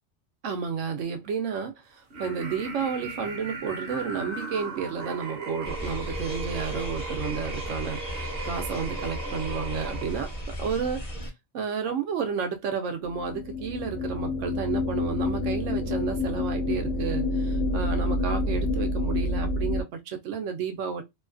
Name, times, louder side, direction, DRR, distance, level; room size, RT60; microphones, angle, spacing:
voice 1, 0.4-11.0 11.5-21.0, right 6 dB, 85° right, 1.0 m, -31 dB
sound 1, 2.1-10.5, right 3 dB, 55° right, 0.9 m, -37 dB
sound 2, 5.6-11.3, left 1 dB, 35° left, 0.7 m, -36 dB
sound 3, 13.0-19.8, left 2 dB, 70° left, 1.0 m, -28 dB
2.7 x 2.3 x 2.4 m
omnidirectional pair, 1.3 m